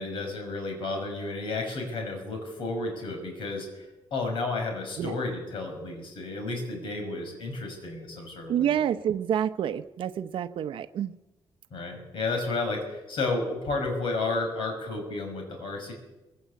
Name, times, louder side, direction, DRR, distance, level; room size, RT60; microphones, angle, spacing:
voice 1, 0.0-8.8 11.7-15.9, left 3 dB, 65° left, 3 dB, 6.1 m, -32 dB
voice 2, 8.5-11.1, right 9 dB, 65° right, 11 dB, 0.8 m, -28 dB
21.5 x 16.5 x 8.3 m, 1.0 s
cardioid pair, 165°, 10 cm